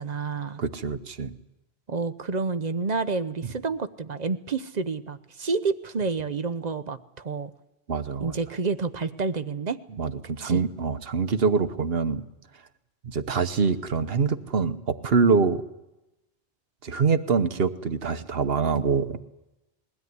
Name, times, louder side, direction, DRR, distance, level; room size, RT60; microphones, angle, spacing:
voice 1, 0.0-0.6 1.9-7.5 8.2-9.8 10.2-10.6, right 4 dB, 40° right, 11 dB, 0.9 m, -29 dB
voice 2, 0.6-1.3 7.9-8.3 10.0-12.2 13.0-15.6 16.8-19.2, right 5 dB, 60° right, 10 dB, 1.2 m, -25 dB
21.5 x 16.5 x 9.5 m, 0.96 s
omnidirectional pair, 1.2 m